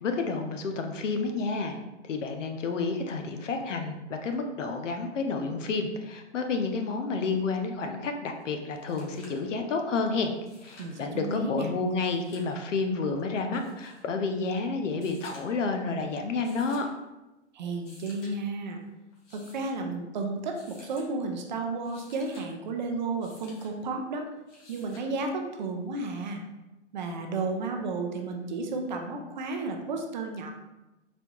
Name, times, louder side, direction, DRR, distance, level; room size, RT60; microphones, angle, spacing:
voice 1, 0.0-1.8 2.0-10.3 10.6-16.9, left 4 dB, 85° left, 5 dB, 0.7 m, -30 dB
sound 1, 8.4-8.5 8.7-9.5 10.3-11.0 11.9-12.6 13.5-14.0 14.9-15.7 16.4-16.9 17.7-18.3 19.1-19.8 20.5-21.1 21.7-22.5 23.2-23.7 24.5-25.1 26.5-26.6, left 2 dB, 70° left, 1.4 m, -53 dB
voice 2, 10.8-11.7 17.5-18.8 19.3-24.3 24.7-26.4 26.9-30.5, right 3 dB, 40° right, 3 dB, 0.4 m, -32 dB
4.2 x 2.3 x 2.8 m, 1.0 s
hypercardioid pair, 145°, 36 cm